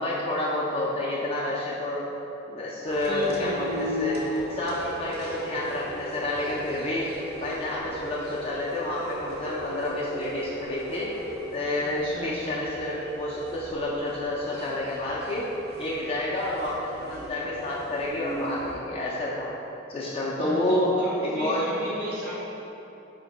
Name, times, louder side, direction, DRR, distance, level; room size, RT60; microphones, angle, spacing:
voice 1, 0.0-2.0 2.5-4.1 4.5-7.1 7.4-11.1 11.5-15.5 15.8-19.5 19.9-20.9 21.2-21.6, left 1 dB, 30° left, -5 dB, 0.3 m, -29 dB
sound 1, 2.8-18.8, equal, 50° right, 0.5 m, -37 dB
voice 2, 3.0-4.4 11.8-12.6 20.3-22.3, equal, 75° right, -10 dB, 0.8 m, -35 dB
2.7 x 2.5 x 4.1 m, 2.9 s
head